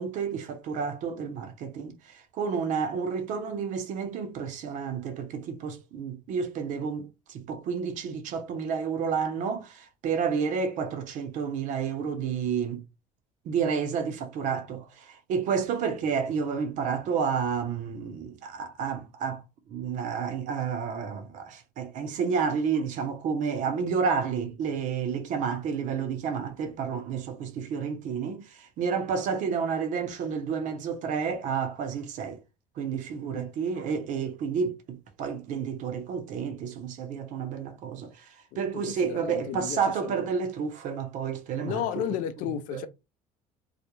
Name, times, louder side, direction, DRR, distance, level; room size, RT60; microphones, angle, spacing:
voice 1, 0.0-12.8 13.5-32.4 32.8-41.8 42.7-42.9, right 6 dB, 65° right, 0.7 m, -30 dB
voice 2, 38.5-40.3 41.6-42.9, left 10 dB, 80° left, 0.4 m, -34 dB
2.4 x 2.1 x 2.9 m
cardioid pair, 100°, 14 cm